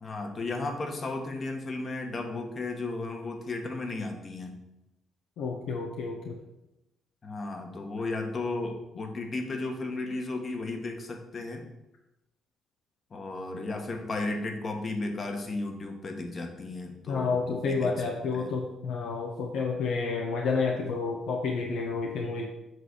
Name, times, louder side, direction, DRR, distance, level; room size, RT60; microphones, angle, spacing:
voice 1, 0.0-4.6 7.2-11.6 13.1-17.9 18.3-18.5, left 2 dB, 40° left, 3 dB, 1.3 m, -34 dB
voice 2, 5.4-6.4 17.1-22.5, left 4 dB, 80° left, 1 dB, 0.9 m, -30 dB
7.8 x 3.3 x 6.2 m, 0.92 s
cardioid pair, 90°, 0 cm